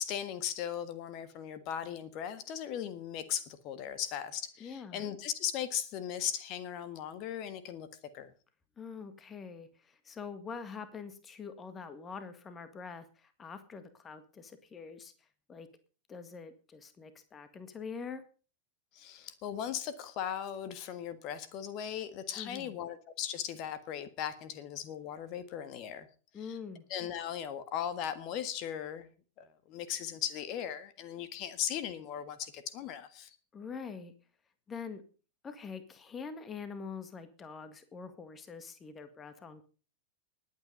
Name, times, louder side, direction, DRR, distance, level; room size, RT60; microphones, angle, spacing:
voice 1, 0.0-7.9 8.1-8.3 18.9-26.1 26.4-26.6 26.9-29.1 29.4-33.3, left 9 dB, 40° left, 13 dB, 1.6 m, -38 dB
voice 2, 4.6-5.1 8.8-15.1 15.5-15.7 16.1-18.3 22.4-22.8 26.3-26.8 33.5-34.1 34.7-35.1 35.4-39.6, left 5 dB, 20° left, 11 dB, 1.8 m, -44 dB
20.5 x 8.8 x 5.3 m, 0.38 s
figure-of-eight pair, 90°, 0 cm